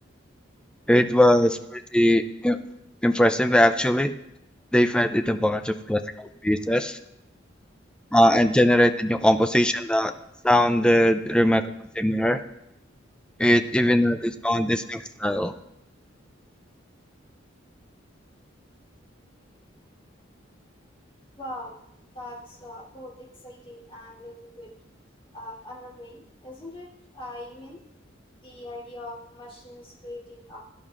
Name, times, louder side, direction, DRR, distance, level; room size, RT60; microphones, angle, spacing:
voice 1, 0.9-2.6 3.0-4.1 4.7-7.0 8.1-10.1 10.4-11.6 12.0-12.4 13.4-15.5, equal, 5° left, 8 dB, 0.4 m, -20 dB
voice 2, 21.4-21.7 22.1-24.7 25.3-26.9 27.1-27.8 28.4-30.6, left 1 dB, 25° left, -5 dB, 3.2 m, -41 dB
16.5 x 11.0 x 2.5 m, 0.86 s
head